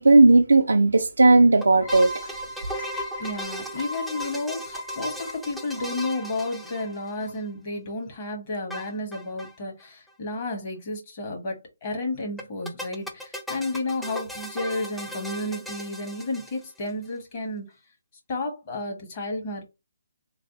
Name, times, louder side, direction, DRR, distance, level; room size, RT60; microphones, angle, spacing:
voice 1, 0.0-2.1, right 2 dB, 85° right, 0.4 m, -16 dB
sound 1, 1.6-7.4 8.7-9.6 9.8-9.9 10.1-10.2 12.4-16.9, equal, ahead, 0.3 m, -38 dB
sound 2, 1.8-7.3, left 1 dB, 65° left, 1.6 m, -37 dB
voice 2, 3.2-17.7 18.3-19.6, left 2 dB, 35° left, 1.1 m, -32 dB
3.3 x 2.3 x 2.6 m
figure-of-eight pair, 150°, 0 cm